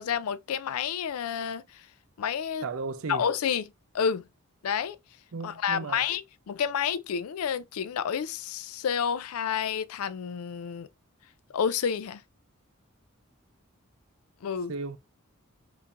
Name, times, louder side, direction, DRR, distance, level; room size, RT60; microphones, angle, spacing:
voice 1, 0.0-1.9 2.2-2.6 3.1-3.7 3.9-4.2 4.6-5.0 5.4-10.9 11.5-12.2 14.4-14.7, left 7 dB, 85° left, 0.4 m, -29 dB
voice 2, 2.6-3.3 5.3-6.1 14.7-15.0, right 4 dB, 70° right, 0.5 m, -35 dB
4.4 x 2.6 x 2.5 m
head